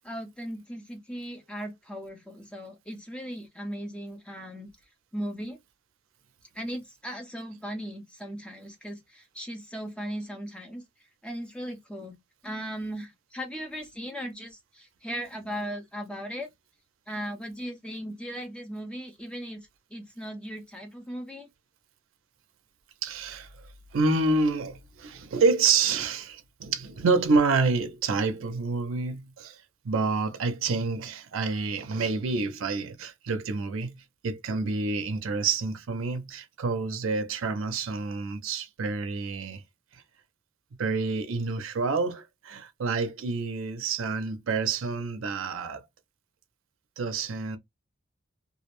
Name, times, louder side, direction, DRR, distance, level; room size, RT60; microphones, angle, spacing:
voice 1, 0.0-4.7 5.1-5.6 6.5-10.8 11.2-12.2 12.4-16.5 17.1-21.5, equal, 5° left, 0.5 m, -37 dB
voice 2, 23.0-23.5 23.9-33.9 34.2-39.6 39.9-40.0 40.8-45.8 47.0-47.6, right 4 dB, 85° right, 0.5 m, -28 dB
2.4 x 2.0 x 2.9 m
head